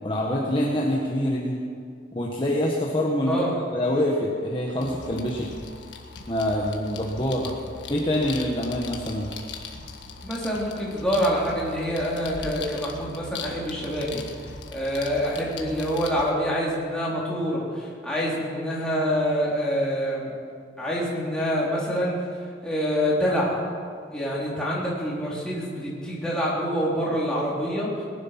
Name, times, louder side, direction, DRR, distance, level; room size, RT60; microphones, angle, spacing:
voice 1, 0.0-1.6 2.1-5.5 6.3-7.5 7.9-9.3, left 1 dB, 25° left, -3 dB, 1.5 m, -25 dB
voice 2, 3.2-3.6 7.4-7.5 10.2-14.2 14.7-20.3 20.8-23.6 24.1-28.0, equal, 5° left, -6 dB, 3.8 m, -26 dB
sound 1, 4.8-16.3, left 4 dB, 75° left, 1.6 m, -40 dB
20.0 x 11.5 x 5.9 m, 2.3 s
head